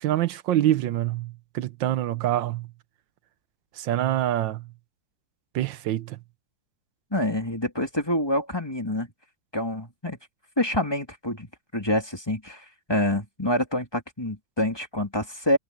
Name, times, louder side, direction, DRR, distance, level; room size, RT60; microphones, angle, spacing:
voice 1, 0.0-2.7 3.8-4.6 5.5-6.2, right 13 dB, 85° right, 1.5 m, -25 dB
voice 2, 7.1-9.1 9.5-10.2 10.6-15.6, left 1 dB, 15° left, 3.0 m, -27 dB
omnidirectional pair, 2.0 m